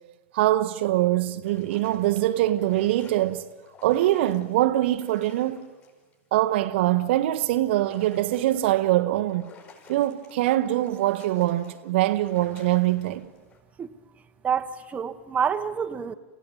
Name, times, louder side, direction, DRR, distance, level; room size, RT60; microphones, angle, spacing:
voice 1, 0.3-3.4 3.8-5.7 6.3-9.5 9.9-13.3, right 15 dB, 55° right, 1.0 m, -23 dB
sound 1, 1.4-6.1 6.6-6.9 7.7-8.8 9.3-13.6, left 5 dB, 30° left, 6.8 m, -52 dB
voice 2, 14.4-16.1, right 7 dB, 20° right, 1.2 m, -27 dB
28.5 x 16.0 x 9.1 m
figure-of-eight pair, 100°, 7 cm